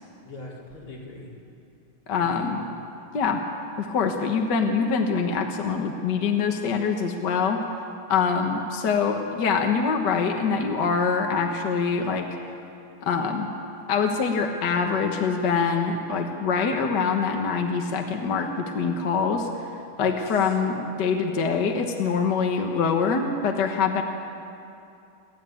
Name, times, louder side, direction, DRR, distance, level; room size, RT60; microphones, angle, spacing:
voice 1, 0.2-1.3 2.2-2.5 20.0-20.2, left 2 dB, 80° left, -4 dB, 4.7 m, -41 dB
voice 2, 2.1-2.7 3.1-3.4 3.8-12.3 13.0-13.5 13.9-19.7 20.0-24.0, left 5 dB, 55° left, 3 dB, 1.8 m, -24 dB
29.5 x 13.0 x 9.1 m, 2.7 s
omnidirectional pair, 2.4 m